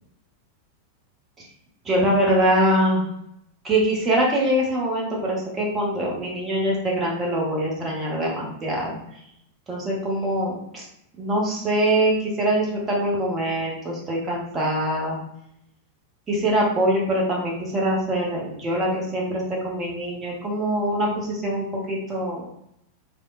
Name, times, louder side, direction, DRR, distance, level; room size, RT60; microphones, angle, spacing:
voice 1, 1.8-3.0 3.6-9.0 9.7-10.8 11.2-15.2 16.3-22.5, right 1 dB, 20° right, -3 dB, 0.8 m, -23 dB
3.1 x 2.1 x 2.4 m, 0.77 s
figure-of-eight pair, 90°, 0 cm